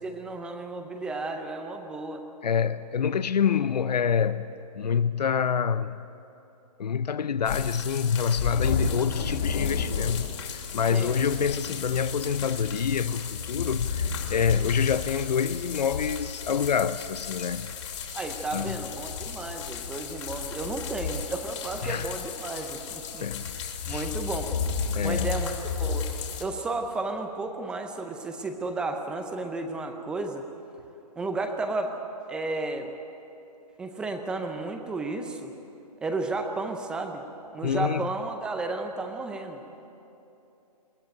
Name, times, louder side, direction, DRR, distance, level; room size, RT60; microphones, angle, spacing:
voice 1, 0.0-2.2 10.9-11.2 18.1-23.3 23.9-24.5 25.0-26.1 26.4-30.4 31.2-32.0 32.3-32.9 33.8-35.5 36.0-37.2 37.5-39.6, right 3 dB, 5° right, 0.5 m, -33 dB
voice 2, 2.4-6.0 6.8-17.7 18.5-18.8 21.8-22.1 23.2-23.4 23.9-24.1 24.9-25.3 37.6-38.1, left 7 dB, 80° left, 0.7 m, -27 dB
sound 1, 7.4-26.4, left 6 dB, 45° left, 2.9 m, -33 dB
21.5 x 16.5 x 9.2 m
hypercardioid pair, 160°, 21 cm